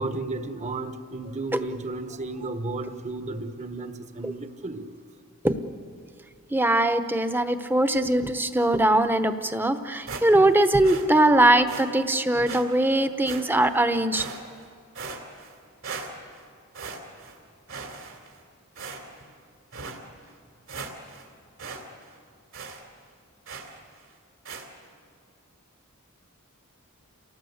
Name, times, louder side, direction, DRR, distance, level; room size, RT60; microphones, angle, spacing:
voice 1, 0.0-4.9, right 2 dB, 30° right, 9 dB, 1.3 m, -33 dB
voice 2, 6.5-14.2, right 1 dB, 10° right, 9 dB, 1.0 m, -21 dB
sound 1, 10.1-10.6 10.8-11.1 11.7-11.9 12.5-12.6 13.3-13.7 14.1-14.6 15.0-15.6 15.8-16.4 16.7-17.4 17.7-18.4 18.8-19.3 19.7-20.0 20.4-20.5 20.7-21.3 21.6-21.8 22.1-22.2 22.5-22.8 23.5-23.8 24.5-24.7, right 4 dB, 65° right, 3.3 m, -38 dB
28.5 x 18.5 x 8.0 m, 2.2 s
head